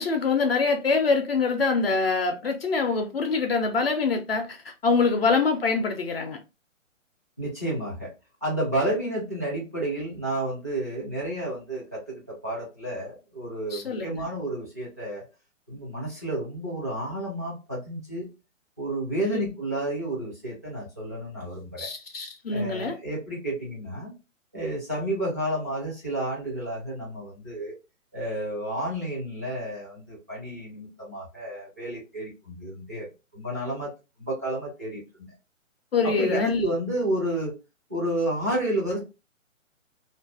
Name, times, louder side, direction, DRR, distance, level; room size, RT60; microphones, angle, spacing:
voice 1, 0.0-4.6 4.8-6.4 13.7-14.3 19.2-19.5 21.8-23.0 35.9-36.7, left 4 dB, 50° left, 0.5 m, -25 dB
voice 2, 7.4-8.1 8.4-15.3 15.7-18.3 18.8-21.9 22.5-24.1 24.5-27.7 28.1-33.9 34.2-35.3 36.0-37.6 37.9-39.0, right 1 dB, 15° right, 0.4 m, -31 dB
2.5 x 2.4 x 2.3 m
figure-of-eight pair, 130°, 40 cm